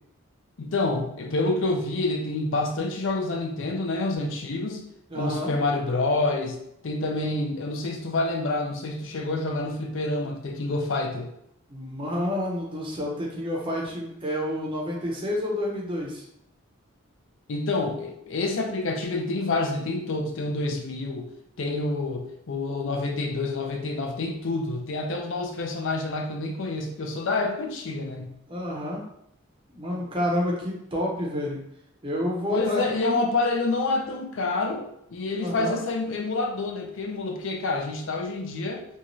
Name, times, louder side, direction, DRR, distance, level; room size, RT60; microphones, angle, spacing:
voice 1, 0.6-4.8 5.1-6.6 6.8-11.3 17.5-21.3 21.6-28.3 32.5-38.8, left 2 dB, 60° left, 3 dB, 0.5 m, -28 dB
voice 2, 5.1-5.5 11.7-16.2 28.5-29.0 29.7-31.6 32.0-33.3 35.4-35.8, left 1 dB, 25° right, -2 dB, 0.6 m, -29 dB
2.6 x 2.3 x 2.9 m, 0.75 s
head